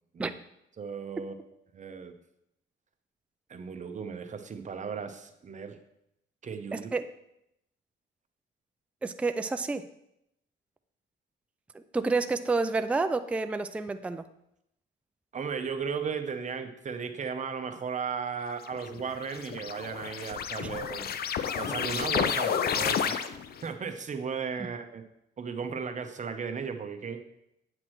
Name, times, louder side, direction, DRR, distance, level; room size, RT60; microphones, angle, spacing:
voice 1, 0.8-1.3 1.7-2.1 3.5-5.8 6.4-6.9 15.3-21.1 21.6-23.4 23.6-25.0 25.4-27.2, right 6 dB, 40° right, 7 dB, 0.8 m, -35 dB
voice 2, 6.7-7.1 9.0-9.9 11.7-14.2 20.6-20.7, right 3 dB, 5° right, 9 dB, 0.3 m, -29 dB
sound 1, 18.7-23.6, left 7 dB, 50° left, 0.5 m, -31 dB
8.7 x 6.0 x 3.1 m, 0.80 s
cardioid pair, 90°, 20 cm